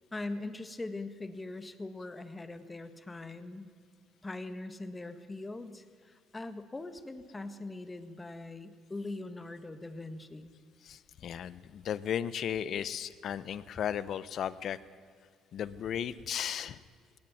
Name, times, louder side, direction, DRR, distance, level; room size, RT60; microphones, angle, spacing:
voice 1, 0.1-3.7 4.2-10.5, left 2 dB, 20° left, 10 dB, 1.7 m, -41 dB
voice 2, 10.8-14.8 15.5-16.8, left 9 dB, 55° left, 17 dB, 0.9 m, -35 dB
18.5 x 18.0 x 9.4 m, 2.1 s
cardioid pair, 90°, 0 cm